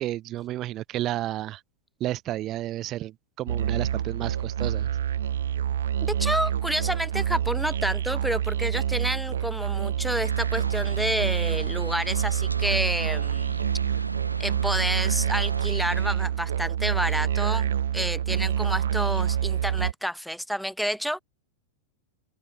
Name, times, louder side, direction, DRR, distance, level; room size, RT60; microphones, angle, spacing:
voice 1, 0.0-1.6 2.0-4.9, right 14 dB, 35° right, 0.7 m, -31 dB
Musical instrument, 3.5-19.9, right 10 dB, 65° right, 0.9 m, -27 dB
voice 2, 6.0-13.6 14.4-17.7 17.9-21.2, equal, ahead, 4.5 m, -29 dB
sound 1, 10.2-16.1, right 2 dB, 85° right, 2.2 m, -37 dB
open air
figure-of-eight pair, 90°, 0 cm